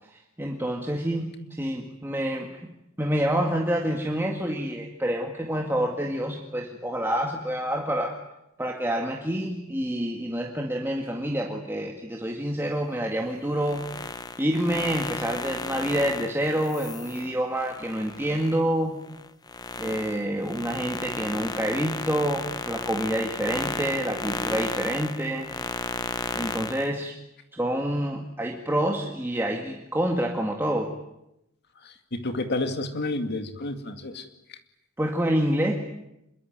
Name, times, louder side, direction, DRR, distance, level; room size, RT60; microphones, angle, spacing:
voice 1, 0.1-2.7 3.0-8.2 8.6-13.8 14.4-19.0 19.8-25.5 26.4-27.2 27.5-30.9 35.0-35.9, right 1 dB, 10° right, 1 dB, 2.1 m, -27 dB
sound 1, 13.5-18.6 19.0-26.9, left 3 dB, 20° left, 0.9 m, -34 dB
voice 2, 31.8-34.6, left 2 dB, 50° left, 7 dB, 2.3 m, -31 dB
26.5 x 22.5 x 9.3 m, 0.87 s
head